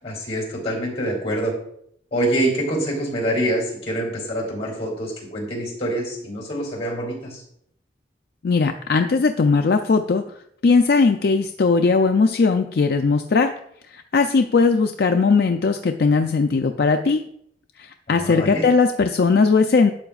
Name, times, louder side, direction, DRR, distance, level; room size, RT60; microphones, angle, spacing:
voice 1, 0.0-1.5 2.1-7.4 18.1-18.7, right 1 dB, 35° left, -1 dB, 3.1 m, -25 dB
voice 2, 8.4-10.2 10.6-13.5 13.9-17.2 17.8-19.9, left 4 dB, 65° left, 6 dB, 0.4 m, -18 dB
11.5 x 7.7 x 2.4 m, 0.71 s
head